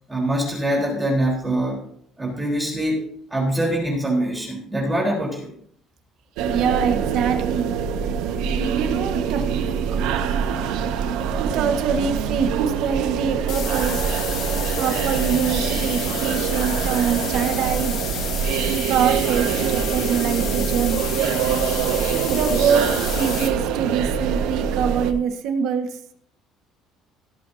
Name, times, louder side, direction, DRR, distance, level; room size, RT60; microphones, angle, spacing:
voice 1, 0.1-1.8 2.2-3.0 3.3-5.5, right 1 dB, 10° right, -2 dB, 4.0 m, -23 dB
sound 1, 6.4-25.1, right 7 dB, 85° right, 1.5 m, -24 dB
voice 2, 6.5-7.7 8.7-9.7 11.4-14.0 14.8-18.0 18.9-21.1 21.5-26.0, right 7 dB, 60° right, 5 dB, 1.6 m, -24 dB
sound 2, 13.5-23.5, left 8 dB, 55° left, 2.5 m, -31 dB
17.0 x 11.5 x 2.8 m, 0.63 s
cardioid pair, 160°, 0 cm